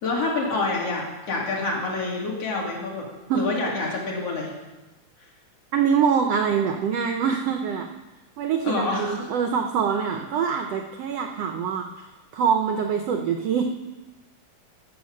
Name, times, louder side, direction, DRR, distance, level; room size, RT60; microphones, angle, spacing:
voice 1, 0.0-3.1 3.3-4.5 8.6-9.2, left 3 dB, 50° left, -2 dB, 3.1 m, -27 dB
voice 2, 5.7-7.9 8.4-12.1 12.3-13.6, right 7 dB, 75° right, 5 dB, 1.5 m, -24 dB
13.0 x 7.8 x 6.4 m, 1.1 s
omnidirectional pair, 3.7 m